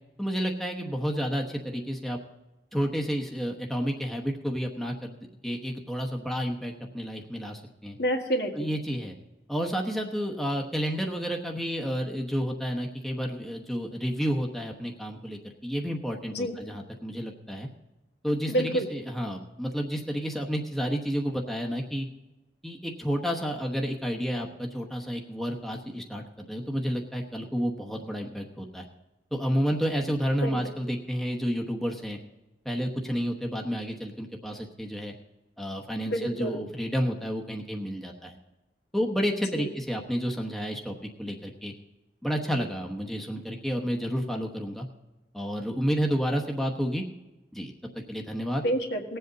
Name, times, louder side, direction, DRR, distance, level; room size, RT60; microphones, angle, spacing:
voice 1, 0.2-2.2 2.7-5.2 5.4-8.0 8.5-9.1 9.5-17.7 18.2-22.1 22.6-28.9 29.3-32.2 32.6-35.1 35.6-38.4 38.9-41.7 42.2-44.9 45.3-47.0 47.5-48.6, equal, ahead, 1 dB, 1.0 m, -30 dB
voice 2, 8.0-8.7 16.3-16.5 18.5-18.9 30.4-30.6 36.1-36.6 39.5-39.7 48.6-49.2, right 1 dB, 70° left, 2 dB, 1.8 m, -28 dB
19.0 x 7.9 x 4.0 m, 1.0 s
head